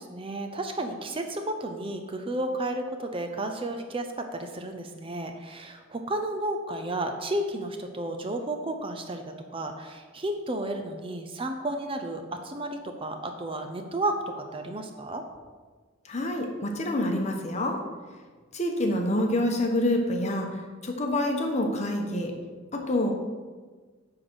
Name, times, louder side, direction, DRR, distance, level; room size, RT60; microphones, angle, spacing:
voice 1, 0.0-9.2 9.5-15.2, right 1 dB, 25° right, 5 dB, 0.6 m, -32 dB
voice 2, 16.0-17.8 18.5-22.3 22.7-23.1, left 1 dB, 35° left, 2 dB, 1.1 m, -27 dB
9.8 x 3.8 x 6.2 m, 1.4 s
head